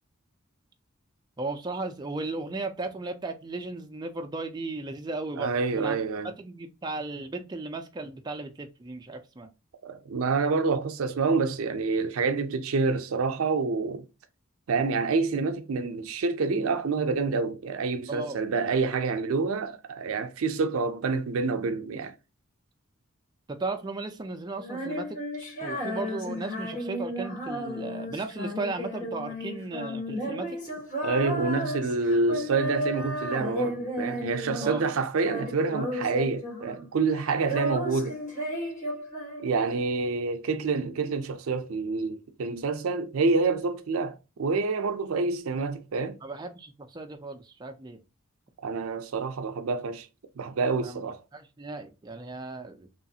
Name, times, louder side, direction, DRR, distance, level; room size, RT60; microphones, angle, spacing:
voice 1, 1.4-6.0 6.2-9.5 18.1-18.4 23.5-25.2 25.6-30.6 34.6-34.8 46.2-48.0 50.8-51.0 51.3-52.9, right 3 dB, 20° right, 0.3 m, -35 dB
voice 2, 5.4-6.3 9.8-14.0 14.7-22.1 31.0-38.2 39.4-46.2 48.6-50.1 50.4-51.2, right 4 dB, 80° right, 0.4 m, -27 dB
Female singing, 24.6-34.9 35.2-36.9 37.1-39.8, equal, 35° left, 1.3 m, -34 dB
3.0 x 2.4 x 2.7 m
head